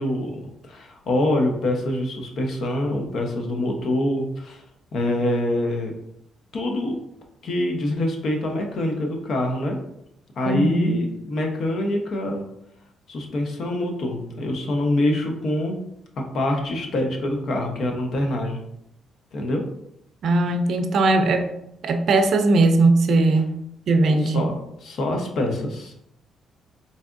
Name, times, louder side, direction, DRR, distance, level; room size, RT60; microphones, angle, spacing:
voice 1, 0.0-4.6 4.9-5.9 6.5-7.0 7.4-9.8 10.4-12.4 13.1-15.8 16.3-18.6 19.3-19.6 24.2-24.5 24.8-25.9, left 1 dB, 60° left, 3 dB, 0.8 m, -25 dB
voice 2, 10.4-11.0 20.2-21.5 21.8-23.5 23.9-24.4, right 2 dB, 65° right, 7 dB, 0.4 m, -19 dB
4.0 x 3.4 x 2.5 m, 0.78 s
cardioid pair, 90°, 0 cm